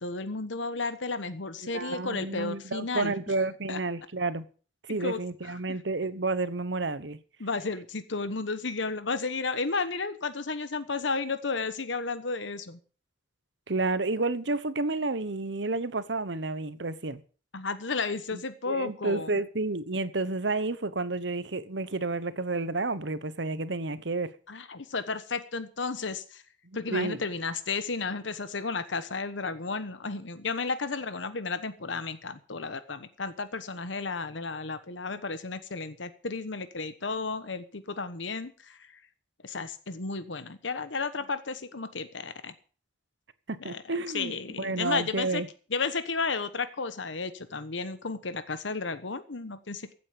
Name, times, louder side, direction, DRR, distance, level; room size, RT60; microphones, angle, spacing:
voice 1, 0.0-3.1 3.7-3.8 5.0-5.6 7.4-12.8 17.5-19.3 24.5-26.4 26.7-38.8 39.4-42.5 43.6-43.8 44.1-45.4 45.7-49.9, left 4 dB, 85° left, 1.2 m, -33 dB
voice 2, 1.6-4.4 4.9-7.2 13.7-17.2 18.3-18.4 18.7-24.3 26.9-27.2 43.5-45.5, right 3 dB, 75° right, 1.1 m, -30 dB
15.5 x 8.5 x 7.1 m
head